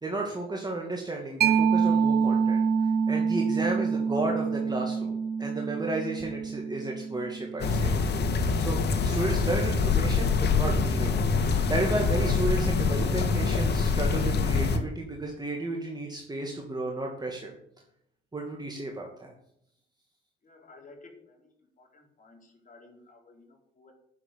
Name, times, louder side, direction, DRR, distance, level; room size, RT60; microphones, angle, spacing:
voice 1, 0.0-7.9 8.6-11.1 11.7-17.5 18.3-19.3, right 2 dB, 20° right, 0 dB, 2.4 m, -33 dB
Mallet percussion, 1.4-8.7, right 6 dB, 50° right, 1.0 m, -27 dB
sound 1, 7.6-14.8, left 4 dB, 55° left, 2.0 m, -25 dB
voice 2, 20.4-21.5 21.8-23.9, left 3 dB, 40° left, 1 dB, 4.3 m, -54 dB
9.8 x 7.5 x 8.8 m, 0.74 s
cardioid pair, 90°, 20 cm